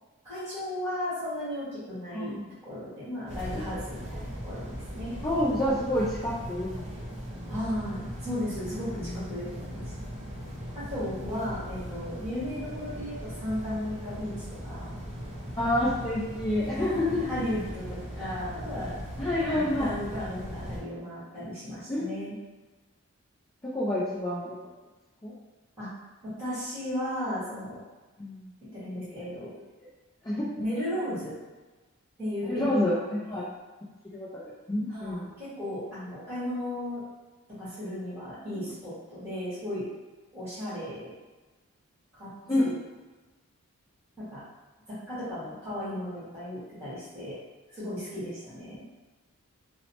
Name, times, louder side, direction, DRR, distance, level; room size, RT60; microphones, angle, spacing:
voice 1, 0.2-5.1 7.5-9.8 10.7-14.3 14.6-14.9 16.7-19.0 19.5-22.3 25.8-25.9 26.2-27.8 28.7-29.5 30.6-31.4 32.2-32.8 34.9-37.0 37.6-39.8 40.3-41.1 42.1-42.3 42.6-42.8 44.2-44.4 44.9-47.4 47.7-48.8, left 1 dB, 10° right, -12 dB, 1.5 m, -35 dB
voice 2, 2.1-2.5 5.2-6.8 7.3-7.5 9.0-9.1 15.6-17.3 18.2-18.3 19.2-19.9 21.9-22.1 23.6-24.6 25.2-25.3 28.2-28.4 29.4-29.5 30.2-30.5 32.5-33.4 34.1-34.4 34.7-35.3 42.5-42.6, left 1 dB, 15° left, -9 dB, 0.4 m, -28 dB
sound 1, 3.3-20.8, equal, 30° right, 0.6 m, -39 dB
3.0 x 2.0 x 2.8 m, 1.2 s
head